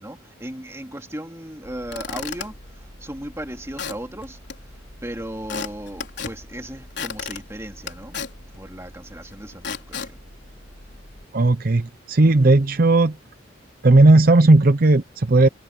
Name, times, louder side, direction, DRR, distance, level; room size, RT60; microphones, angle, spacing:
voice 1, 0.0-4.4 5.0-8.2 8.6-10.2 12.2-12.7, right 1 dB, 15° right, 2.8 m, -36 dB
Squeak / Wood, 1.6-11.2, left 5 dB, 60° left, 4.5 m, -37 dB
voice 2, 11.3-13.1 13.8-15.5, right 2 dB, 45° right, 0.6 m, -15 dB
head